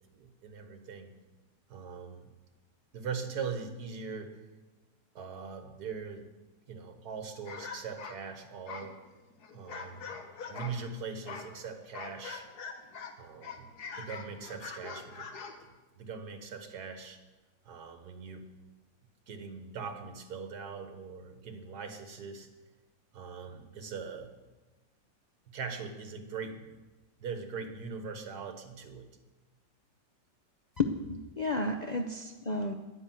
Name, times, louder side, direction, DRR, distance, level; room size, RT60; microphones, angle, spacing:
voice 1, 0.1-1.1 1.7-2.3 2.9-4.4 5.2-6.3 6.7-9.0 9.5-12.5 13.2-13.7 14.0-15.3 15.6-15.7 16.0-17.2 17.7-18.5 19.3-22.5 23.1-24.3 25.5-26.7 27.2-29.1, right 5 dB, 65° right, 6 dB, 1.9 m, -41 dB
sound 1, 7.4-10.8 11.2-13.1 13.4-15.6, left 5 dB, 65° left, 1.7 m, -43 dB
voice 2, 30.8-32.7, left 2 dB, 85° left, 4 dB, 0.3 m, -32 dB
11.0 x 9.9 x 7.8 m, 1.2 s
omnidirectional pair, 1.9 m